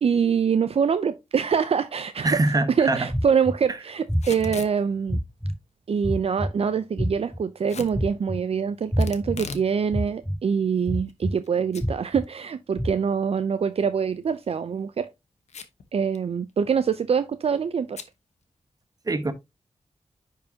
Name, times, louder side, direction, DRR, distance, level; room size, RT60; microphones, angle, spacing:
voice 1, 0.0-2.4 2.8-5.2 5.9-15.1 15.9-18.0, right 6 dB, 60° right, 0.5 m, -24 dB
voice 2, 2.2-3.1 19.1-19.3, right 2 dB, 30° right, 1.0 m, -23 dB
sound 1, 3.1-3.5 4.1-4.5 5.1-5.5 6.0-6.5 7.0-7.4 7.9-8.4 8.9-9.3 9.9-10.3 10.9-11.3 11.8-12.2 12.8-12.9, equal, 5° left, 2.0 m, -25 dB
Packing tape duct tape / Tearing, 4.1-4.8 7.7-8.0 9.0-9.7 10.1-10.2 10.9-11.5 11.7-11.8 12.2-12.3 14.3-14.6 15.5-15.9 16.2-16.3 16.5-16.8 17.9-18.1, left 5 dB, 75° left, 1.1 m, -38 dB
10.5 x 4.7 x 2.8 m
wide cardioid pair, 115°, 12 cm